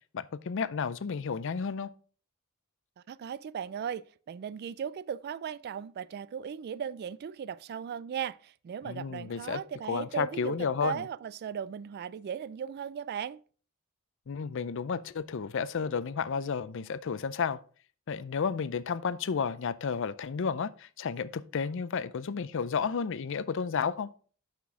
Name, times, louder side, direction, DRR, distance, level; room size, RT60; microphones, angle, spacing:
voice 1, 0.1-1.9 8.8-9.6 9.9-11.0 14.3-17.6 18.1-24.1, left 6 dB, 65° left, 0.5 m, -32 dB
voice 2, 3.1-13.4, right 8 dB, 50° right, 0.3 m, -37 dB
6.0 x 5.9 x 4.7 m
head